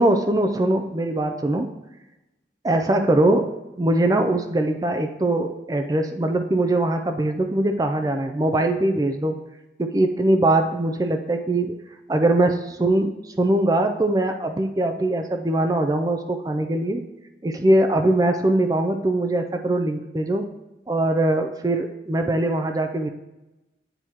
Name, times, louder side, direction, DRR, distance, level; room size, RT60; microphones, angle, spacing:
voice 1, 0.0-1.7 2.6-3.5 3.8-9.3 9.8-11.7 12.1-17.0 17.4-20.5 20.9-23.1, right 1 dB, 20° right, 5 dB, 0.4 m, -21 dB
8.9 x 4.6 x 2.9 m, 0.98 s
head